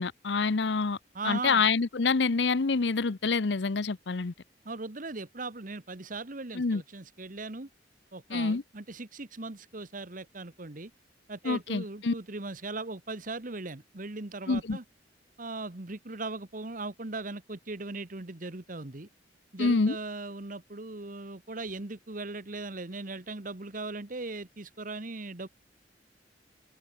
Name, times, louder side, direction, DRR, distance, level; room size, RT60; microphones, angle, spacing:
voice 1, 0.0-1.0 1.2-4.3 6.5-6.8 8.3-8.6 11.4-12.1 14.5-14.8 19.6-20.0, left 4 dB, 75° left, 0.7 m, -27 dB
voice 2, 1.1-1.7 4.6-7.7 8.1-10.9 11.3-14.8 15.4-19.1 19.5-25.5, right 3 dB, 50° right, 1.4 m, -39 dB
open air
head